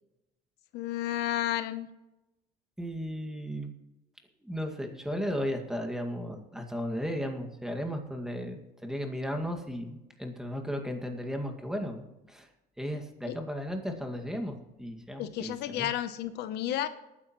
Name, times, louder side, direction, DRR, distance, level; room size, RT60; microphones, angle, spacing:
voice 1, 0.7-1.9 13.3-13.4 15.2-16.9, left 12 dB, 80° left, 0.8 m, -32 dB
voice 2, 2.8-3.7 4.4-12.5 12.8-15.9, equal, 5° right, 2.0 m, -35 dB
20.0 x 9.7 x 3.1 m
cardioid pair, 110°, 17 cm